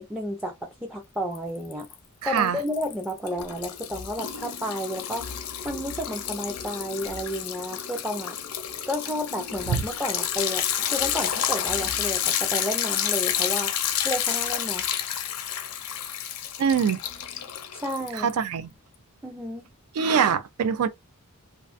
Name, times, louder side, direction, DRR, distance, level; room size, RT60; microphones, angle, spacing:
voice 1, 0.0-1.9 2.2-5.4 5.6-8.4 8.9-13.8 14.0-14.9 17.7-18.3 19.2-19.7, equal, 5° right, 0.4 m, -31 dB
Liquid, 1.3-1.9 2.3-18.4, left 9 dB, 80° left, 0.5 m, -30 dB
voice 2, 2.2-2.6 9.7-9.8 16.6-17.0 18.2-18.7 19.9-20.9, right 7 dB, 80° right, 0.3 m, -23 dB
2.4 x 2.3 x 2.4 m
head